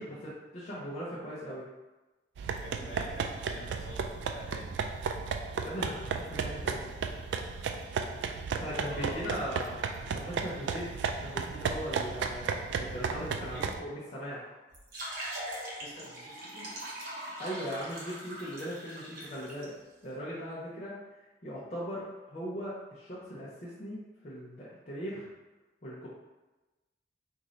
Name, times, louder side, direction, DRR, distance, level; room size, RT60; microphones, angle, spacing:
voice 1, 0.0-1.7 5.6-6.9 8.5-9.7 10.1-12.5 12.8-14.6 17.4-19.7 20.0-21.0 21.4-24.0 24.2-25.2 25.8-26.1, equal, 40° left, -9 dB, 0.6 m, -39 dB
sound 1, 2.4-13.8, right 5 dB, 90° right, 0.3 m, -34 dB
voice 2, 2.6-4.7 8.7-9.4 13.5-13.8 15.8-16.7, equal, 65° left, -5 dB, 1.4 m, -47 dB
sound 2, 14.7-19.6, right 1 dB, 55° right, 0.9 m, -41 dB
3.1 x 2.6 x 3.8 m, 1.1 s
head